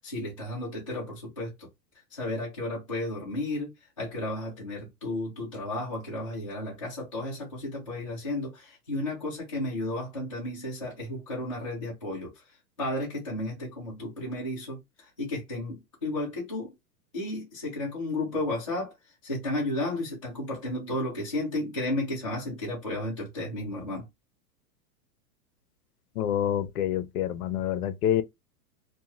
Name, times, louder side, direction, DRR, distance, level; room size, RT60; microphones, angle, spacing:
voice 1, 0.0-1.7 2.1-12.4 12.8-16.7 17.1-18.9 19.2-24.1, left 1 dB, 25° left, 0.3 m, -33 dB
voice 2, 26.2-28.2, left 10 dB, 75° left, 0.6 m, -27 dB
2.6 x 2.2 x 2.8 m
supercardioid pair, 175°, 47 cm